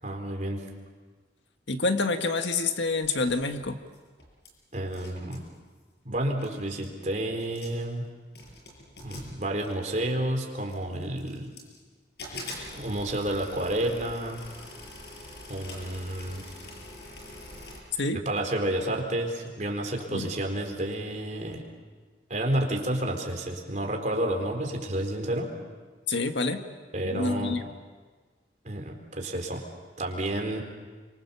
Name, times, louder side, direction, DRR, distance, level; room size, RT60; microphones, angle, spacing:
voice 1, 0.0-0.7 4.7-5.5 6.0-8.0 9.0-11.5 12.7-14.4 15.5-16.4 18.1-21.6 22.3-25.5 26.9-27.6 28.6-29.6 30.0-30.6, right 1 dB, 45° right, 2 dB, 4.2 m, -30 dB
voice 2, 1.7-3.8 18.0-18.2 20.1-20.3 26.1-26.6 27.0-27.6, left 3 dB, 90° left, 6 dB, 1.8 m, -27 dB
sound 1, 3.0-4.5 4.7-5.5 6.1-6.2 6.4-7.0 7.4-7.9 8.3-10.1 10.7-11.8 12.2-17.8, left 2 dB, 65° left, 6.9 m, -44 dB
29.5 x 25.0 x 7.1 m, 1.4 s
head